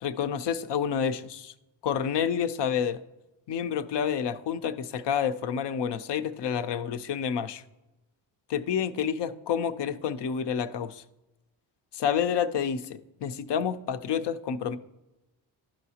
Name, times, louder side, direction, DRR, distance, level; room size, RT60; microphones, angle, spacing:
voice 1, 0.0-1.5 1.8-3.0 3.5-7.6 8.5-11.0 11.9-12.8 13.2-14.8, left 7 dB, 60° left, 11 dB, 0.7 m, -29 dB
12.0 x 4.8 x 2.8 m, 0.97 s
supercardioid pair, 50°, 48 cm